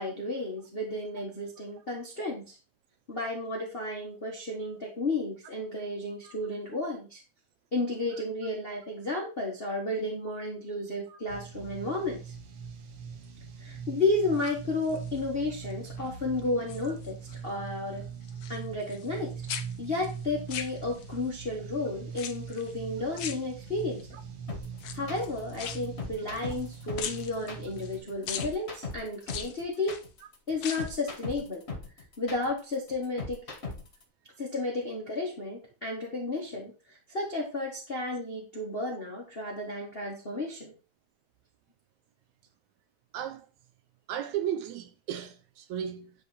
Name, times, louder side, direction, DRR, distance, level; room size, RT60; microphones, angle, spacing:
voice 1, 0.0-2.6 3.1-7.2 7.7-12.3 13.6-17.2 17.4-18.0 18.5-19.3 19.8-24.1 24.9-29.9 30.5-31.6 32.2-33.4 34.4-40.7, left 2 dB, 65° left, 0.5 m, -32 dB
sound 1, 11.3-28.0, right 6 dB, 60° right, 1.8 m, -42 dB
sound 2, 14.2-15.2 15.7-16.1 16.4-17.4 17.7-19.2 19.5-21.3 22.1-22.7 23.1-24.0 24.7-26.7 27.0-27.9 28.3-28.5 29.2-30.0 30.5-31.0 31.3-31.4, left 8 dB, 85° left, 1.2 m, -40 dB
sound 3, 24.5-34.0, left 3 dB, 35° left, 1.1 m, -39 dB
voice 2, 43.1-43.5 44.1-46.1, right 10 dB, 75° right, 2.0 m, -35 dB
9.9 x 3.5 x 4.2 m
omnidirectional pair, 3.5 m